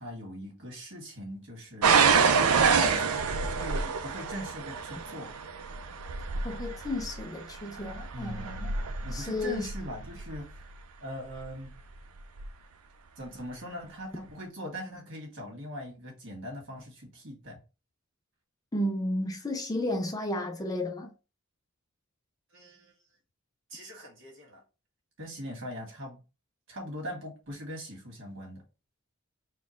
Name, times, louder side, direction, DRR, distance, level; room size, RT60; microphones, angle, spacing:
voice 1, 0.0-1.9 2.8-3.1 3.4-5.3 8.1-10.5 11.0-11.7 13.2-17.6 22.5-22.9 23.7-24.6 25.2-26.2 26.7-28.6, equal, 55° right, 1.8 m, -41 dB
sound 1, 1.8-10.6 11.4-11.8 12.4-12.5, right 5 dB, 85° right, 0.5 m, -27 dB
voice 2, 6.4-8.7 9.1-9.7 18.7-21.1, left 1 dB, 15° left, 0.5 m, -33 dB
4.2 x 2.3 x 4.4 m
head